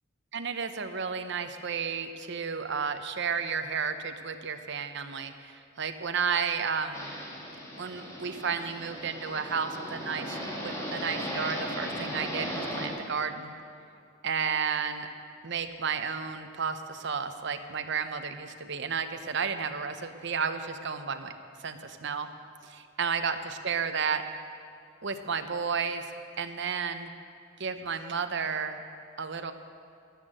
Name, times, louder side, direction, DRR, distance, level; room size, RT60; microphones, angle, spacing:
voice 1, 0.3-7.1 7.8-13.5 14.2-15.1 15.4-21.3 21.6-22.3 22.6-24.2 25.0-26.0 26.4-27.1 27.6-28.8 29.2-29.5, right 6 dB, 60° right, 8 dB, 0.8 m, -32 dB
sound 1, 6.9-12.9, equal, 15° left, 2.3 m, -37 dB
12.0 x 10.5 x 7.7 m, 2.4 s
head